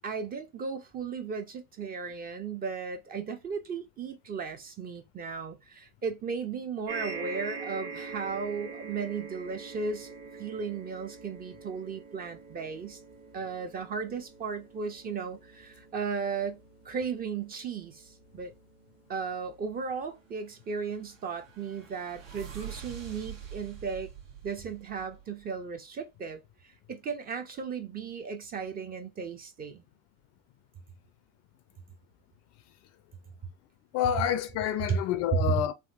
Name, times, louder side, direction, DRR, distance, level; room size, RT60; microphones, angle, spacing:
voice 1, 0.0-10.1 10.4-13.0 13.3-16.6 16.8-18.5 19.1-24.1 24.4-29.8 34.9-35.0 35.3-35.5, right 5 dB, 25° right, 0.4 m, -35 dB
sound 1, 6.9-21.4 22.2-22.3 22.5-22.6, right 4 dB, 45° right, 1.2 m, -45 dB
sound 2, 20.6-25.5, right 8 dB, 80° right, 1.1 m, -45 dB
voice 2, 33.9-35.7, left 10 dB, 40° left, 0.4 m, -28 dB
3.5 x 2.5 x 2.4 m
hypercardioid pair, 85°, 39 cm